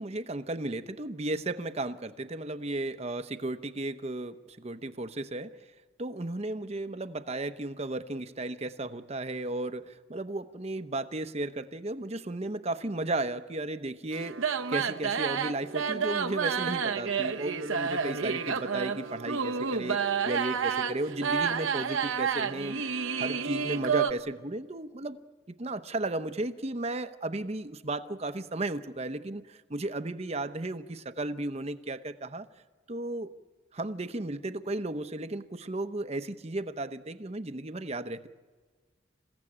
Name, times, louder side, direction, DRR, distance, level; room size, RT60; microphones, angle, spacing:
voice 1, 0.0-5.5 6.0-22.8 23.2-25.2 25.5-32.5 32.9-33.3 33.7-38.3, right 2 dB, 30° right, 10 dB, 0.8 m, -34 dB
sound 1, 14.1-24.1, right 6 dB, 85° right, 1.0 m, -30 dB
28.5 x 16.0 x 8.7 m, 1.5 s
head